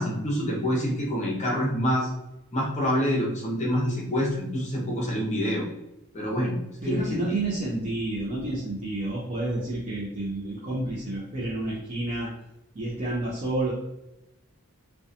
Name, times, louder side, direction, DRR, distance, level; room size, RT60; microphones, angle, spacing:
voice 1, 0.0-2.1 2.5-5.7 6.1-6.6 6.9-7.4, equal, 30° left, -3 dB, 0.7 m, -26 dB
voice 2, 6.8-12.3 12.7-13.7, right 2 dB, 30° right, -6 dB, 0.5 m, -30 dB
2.7 x 2.2 x 2.5 m, 0.92 s
head